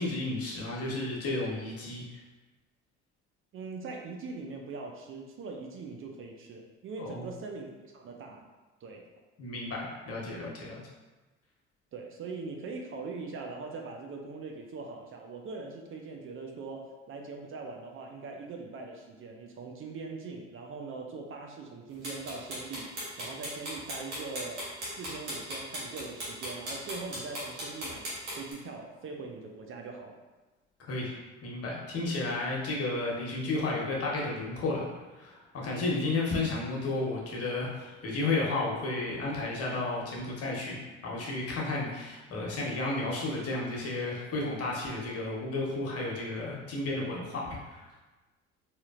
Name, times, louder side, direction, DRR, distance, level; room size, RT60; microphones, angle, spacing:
voice 1, 0.0-2.2 7.0-7.3 9.4-10.8 30.9-31.1 31.4-34.9 35.2-40.8 41.0-47.8, left 2 dB, 45° left, -3 dB, 1.1 m, -32 dB
voice 2, 3.5-8.5 8.8-9.0 11.9-28.1 28.4-30.2, right 4 dB, 40° right, 1 dB, 0.5 m, -41 dB
sound 1, 22.0-28.5, right 1 dB, 85° right, 1.2 m, -37 dB
4.2 x 2.8 x 2.5 m, 1.2 s
hypercardioid pair, 55°, 34 cm